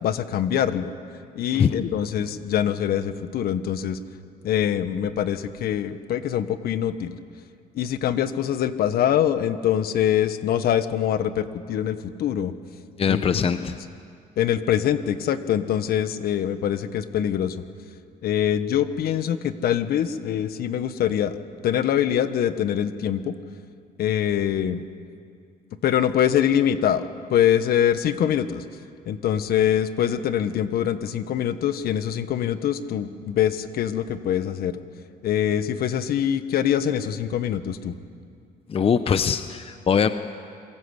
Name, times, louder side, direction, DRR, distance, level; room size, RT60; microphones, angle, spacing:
voice 1, 0.0-0.9 1.3-4.0 4.4-7.2 7.7-12.5 13.1-13.5 14.4-17.6 18.2-21.4 21.6-23.3 24.0-24.8 25.8-28.6 29.1-34.8 35.2-37.9, left 10 dB, 65° left, 11 dB, 1.4 m, -24 dB
voice 2, 13.0-13.8 38.7-40.1, left 7 dB, 35° left, 10 dB, 0.9 m, -22 dB
27.0 x 22.5 x 8.2 m, 2.3 s
cardioid pair, 110°, 17 cm